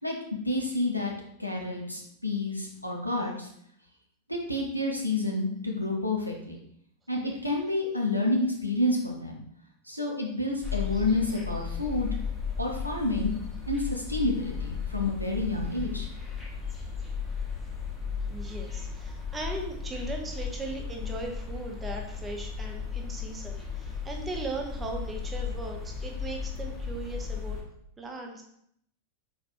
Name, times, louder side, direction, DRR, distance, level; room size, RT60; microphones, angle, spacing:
voice 1, 0.4-1.1 1.4-3.5 4.3-6.6 7.1-9.4 9.9-12.1 12.6-13.3 13.7-16.1, left 2 dB, 90° right, -1 dB, 0.7 m, -29 dB
sound 1, 10.6-27.6, left 6 dB, 5° left, 1.2 m, -35 dB
voice 2, 18.3-27.6 28.0-28.4, right 2 dB, 15° right, 2 dB, 0.8 m, -38 dB
4.2 x 4.1 x 2.6 m, 0.70 s
figure-of-eight pair, 90°, 0 cm